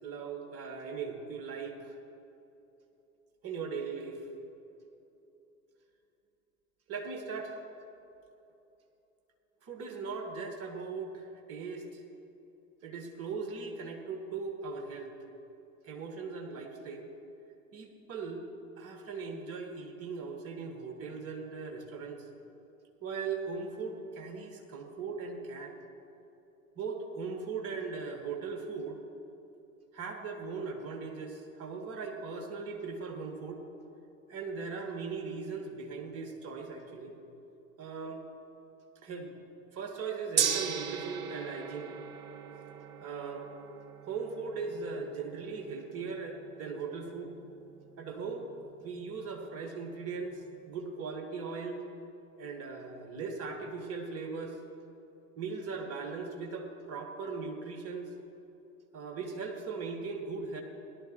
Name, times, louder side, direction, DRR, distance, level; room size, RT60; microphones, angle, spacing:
voice 1, 0.0-1.9 3.4-4.2 6.9-7.6 9.6-12.0 12.8-15.2 15.8-17.1 17.7-18.4 18.8-22.3 23.0-25.7 26.7-29.0 29.9-33.6 34.3-37.2 37.8-38.2 39.0-39.4 39.7-41.9 43.0-43.5 44.0-47.3 48.0-48.5 48.8-51.8 52.4-54.6 55.4-58.1 58.9-60.6, right 4 dB, 35° right, 3 dB, 1.7 m, -39 dB
Gong, 40.4-50.6, right 8 dB, 55° right, 0.9 m, -39 dB
17.5 x 12.0 x 3.0 m, 2.9 s
figure-of-eight pair, 85°, 42 cm